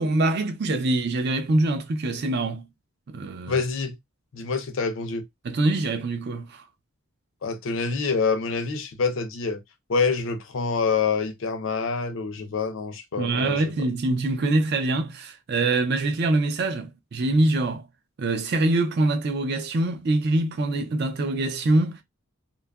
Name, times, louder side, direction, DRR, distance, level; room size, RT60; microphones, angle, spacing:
voice 1, 0.0-2.7 3.1-3.6 5.4-6.6 13.2-17.9 18.2-22.0, right 2 dB, 50° right, 0.4 m, -24 dB
voice 2, 3.5-4.0 4.3-5.2 7.4-9.6 9.9-13.6, left 5 dB, 60° left, 0.5 m, -26 dB
2.7 x 2.3 x 2.2 m
head